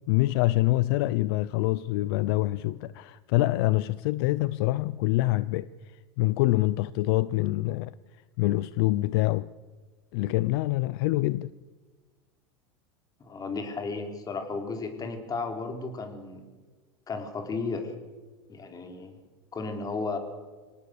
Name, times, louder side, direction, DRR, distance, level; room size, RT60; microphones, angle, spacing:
voice 1, 0.1-5.7 6.2-7.9 8.4-9.5 10.1-11.5, left 18 dB, 65° left, 0.6 m, -25 dB
voice 2, 13.2-16.5 17.1-17.9 18.5-19.2 19.5-20.2, left 4 dB, 25° left, 4.3 m, -34 dB
25.5 x 18.5 x 6.8 m
hypercardioid pair, 100°, 14 cm